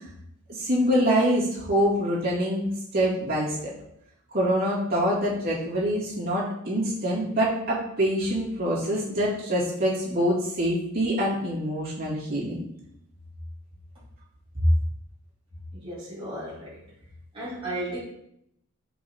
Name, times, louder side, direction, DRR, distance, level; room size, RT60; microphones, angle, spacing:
voice 1, 0.5-3.7 4.3-12.6, equal, 45° right, -8 dB, 2.4 m, -25 dB
voice 2, 15.7-16.8 17.3-18.0, right 1 dB, 25° right, -9 dB, 2.1 m, -34 dB
5.2 x 4.7 x 4.3 m, 0.75 s
head